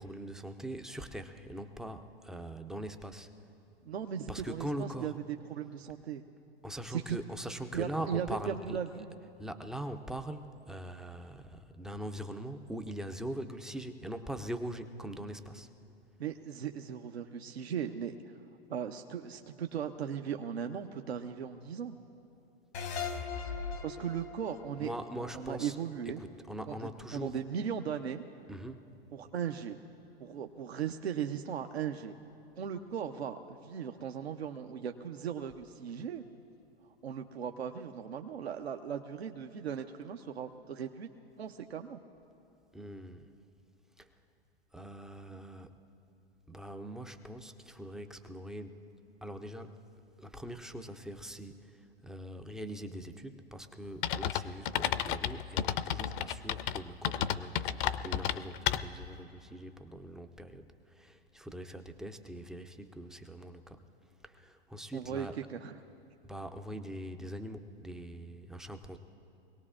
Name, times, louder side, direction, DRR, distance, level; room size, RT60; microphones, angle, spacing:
voice 1, 0.0-3.3 4.3-5.2 6.6-8.8 9.4-15.7 24.8-25.8 26.1-27.4 28.5-28.9 42.7-43.3 44.0-44.1 44.7-45.8 46.5-48.8 49.2-49.8 50.2-63.8 64.2-65.4 66.3-69.0, right 1 dB, ahead, 6 dB, 0.3 m, -42 dB
voice 2, 3.9-6.2 6.9-7.2 7.7-9.1 16.2-18.1 18.7-22.0 23.8-26.2 26.7-26.8 27.1-28.2 29.1-29.8 30.2-32.2 32.6-36.2 37.0-41.1 41.4-42.0 64.9-65.8, right 8 dB, 85° right, 5 dB, 0.7 m, -37 dB
sound 1, 22.7-26.1, left 5 dB, 85° left, 1.4 m, -40 dB
sound 2, 54.0-59.1, left 10 dB, 55° left, 0.6 m, -32 dB
24.5 x 18.0 x 2.4 m, 2.8 s
hypercardioid pair, 115°, 31 cm